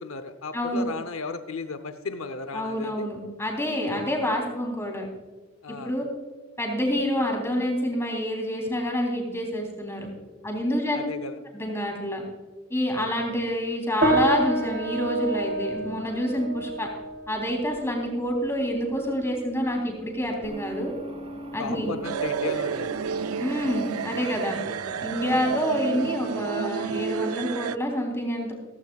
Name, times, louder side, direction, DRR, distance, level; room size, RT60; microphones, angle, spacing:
voice 1, 0.0-3.1 3.9-4.1 5.6-5.9 10.9-11.4 21.6-23.0 25.1-25.5, left 4 dB, 75° left, 10 dB, 0.8 m, -35 dB
voice 2, 0.5-0.9 2.5-5.1 5.8-6.0 6.6-10.1 10.4-11.0 11.5-12.2 12.7-16.9 17.3-20.9 21.5-22.0 23.4-24.6 25.0-28.5, equal, 10° left, 0 dB, 3.5 m, -27 dB
sound 1, 14.0-23.7, right 2 dB, 55° right, 3.2 m, -31 dB
sound 2, 20.4-26.8, equal, 30° right, 1.6 m, -42 dB
sound 3, 22.0-27.8, right 7 dB, 90° right, 0.4 m, -30 dB
16.5 x 15.5 x 2.4 m, 1.3 s
head